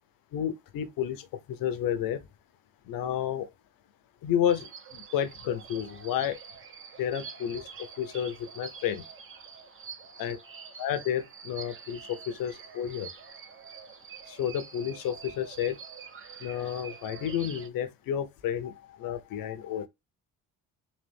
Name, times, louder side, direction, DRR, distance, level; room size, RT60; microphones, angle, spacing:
voice 1, 0.3-1.2 1.6-2.2 2.9-3.5 4.2-4.7 4.9-6.4 7.0-7.6 8.0-9.0 10.2-10.4 10.8-13.1 14.4-15.8 16.4-18.7 19.0-19.9, left 9 dB, 85° left, 0.9 m, -31 dB
Relaxing-garden-sounds, 4.5-17.7, right 6 dB, 40° right, 0.9 m, -46 dB
4.1 x 2.9 x 3.3 m
cardioid pair, 95°, 34 cm